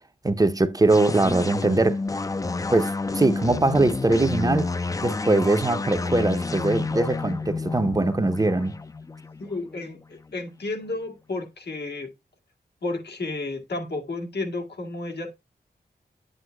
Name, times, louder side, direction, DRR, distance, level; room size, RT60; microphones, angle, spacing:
voice 1, 0.2-2.0 2.7-4.7 5.0-8.8, right 2 dB, 20° right, 0.6 m, -22 dB
sound 1, 0.9-10.3, left 3 dB, 20° left, 0.4 m, -30 dB
voice 2, 9.4-12.1 12.8-15.3, left 2 dB, 80° left, 2.0 m, -32 dB
9.0 x 7.8 x 2.2 m
wide cardioid pair, 140°, 17 cm